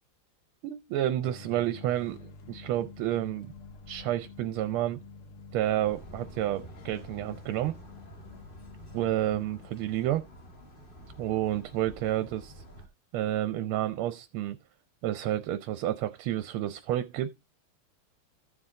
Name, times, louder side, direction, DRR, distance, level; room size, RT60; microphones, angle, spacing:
voice 1, 0.6-3.5 3.9-5.0 5.5-7.8 8.9-10.2 11.2-12.6 13.1-14.6 15.0-17.3, right 13 dB, 85° right, 1.5 m, -30 dB
sound 1, 1.2-9.7, left 3 dB, 90° left, 2.0 m, -48 dB
sound 2, 5.8-12.9, equal, 25° left, 1.5 m, -50 dB
14.5 x 4.9 x 3.7 m
omnidirectional pair, 2.3 m